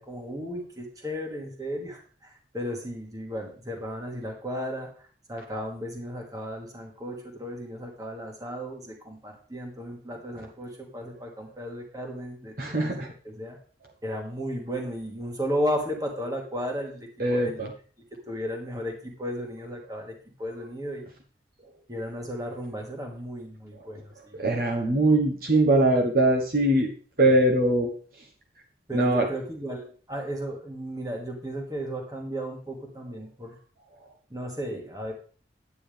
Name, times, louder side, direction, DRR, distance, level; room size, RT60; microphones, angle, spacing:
voice 1, 0.0-13.6 14.0-17.7 18.3-21.1 21.9-24.5 24.8-24.9 28.9-33.6 34.3-35.1, equal, 20° right, 1 dB, 1.9 m, -34 dB
voice 2, 12.6-13.1 17.2-17.7 24.4-26.9 27.2-27.9 28.9-29.3, right 1 dB, 50° right, 0 dB, 1.3 m, -22 dB
9.8 x 9.2 x 3.5 m, 0.41 s
head